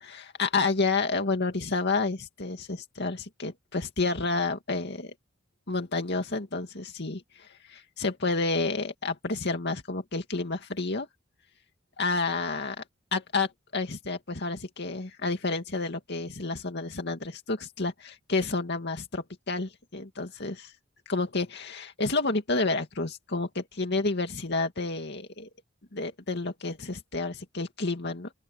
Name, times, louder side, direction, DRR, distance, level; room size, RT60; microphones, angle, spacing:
voice 1, 0.0-5.1 5.7-11.1 12.0-12.8 13.1-20.7 21.1-25.5 25.9-28.3, left 3 dB, 60° left, 2.3 m, -30 dB
open air
head